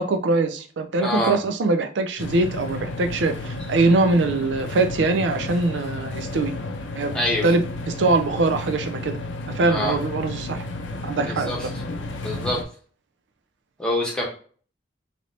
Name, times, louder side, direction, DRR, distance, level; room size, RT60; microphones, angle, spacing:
voice 1, 0.0-6.5 7.0-7.1 7.4-9.2 9.5-10.6 11.0-11.5, right 3 dB, 80° right, 8 dB, 0.4 m, -22 dB
voice 2, 1.0-1.4 7.1-7.5 9.7-10.0 11.2-11.7 12.2-12.6 13.8-14.2, left 1 dB, 5° left, -3 dB, 0.9 m, -25 dB
sound 1, 2.2-12.6, left 2 dB, 85° left, 0.5 m, -32 dB
3.1 x 2.8 x 2.6 m, 0.43 s
head